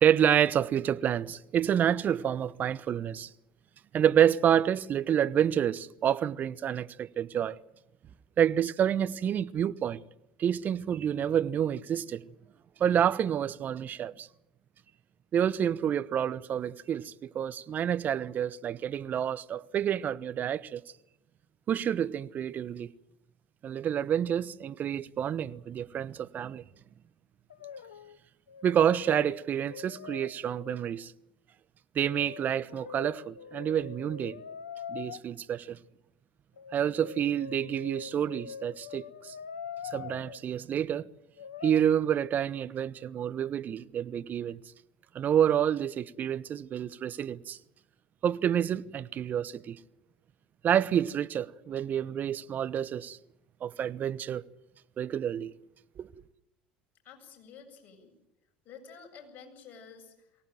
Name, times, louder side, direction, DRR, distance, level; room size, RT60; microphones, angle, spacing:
voice 1, 0.0-3.3 3.9-7.6 8.4-10.0 10.4-12.2 12.8-14.3 15.3-20.8 21.7-22.9 23.6-26.6 28.6-31.1 31.9-34.4 34.9-35.8 36.7-39.3 39.8-41.1 41.6-44.6 45.1-47.6 48.2-49.8 50.6-53.2 53.6-54.4 55.0-55.5 56.0-56.1, right 9 dB, 45° right, 1.0 m, -28 dB
Brass instrument, 27.5-28.2 28.5-31.0 32.0-35.2 36.6-40.4 41.4-41.8, left 7 dB, 85° left, 0.9 m, -44 dB
voice 2, 57.0-58.1 58.6-60.4, left 6 dB, 45° left, 7.9 m, -50 dB
23.5 x 17.5 x 9.2 m
hypercardioid pair, 70°, 4 cm